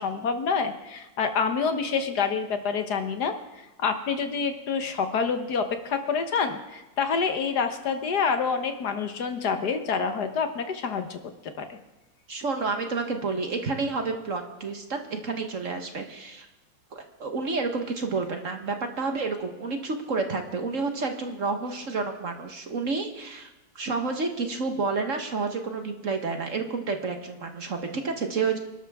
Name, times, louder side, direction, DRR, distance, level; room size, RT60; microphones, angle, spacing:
voice 1, 0.0-3.4 3.8-11.2 11.6-11.8, left 5 dB, 65° left, 8 dB, 1.6 m, -27 dB
voice 2, 12.3-16.5 16.9-23.5 23.7-28.6, right 4 dB, 45° right, 5 dB, 1.5 m, -30 dB
26.5 x 12.0 x 3.6 m, 1.1 s
omnidirectional pair, 2.0 m